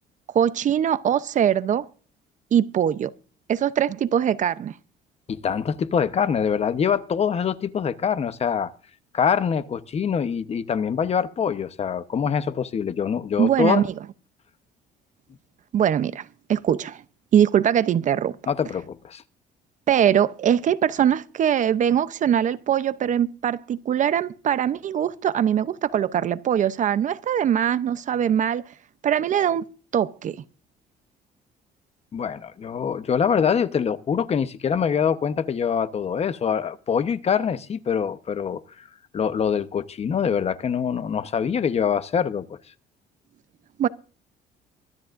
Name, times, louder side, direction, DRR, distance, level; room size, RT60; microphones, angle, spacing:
voice 1, 0.3-1.9 2.5-3.1 3.5-4.7 13.4-13.8 15.7-17.0 17.3-18.4 19.9-28.6 29.0-29.6 29.9-30.4 43.8-43.9, right 9 dB, 50° right, 0.7 m, -22 dB
voice 2, 5.3-8.7 9.1-13.8 18.5-19.2 32.1-38.6 39.1-42.6, left 7 dB, 40° left, 1.0 m, -24 dB
24.0 x 10.5 x 2.6 m
cardioid pair, 110°, 17 cm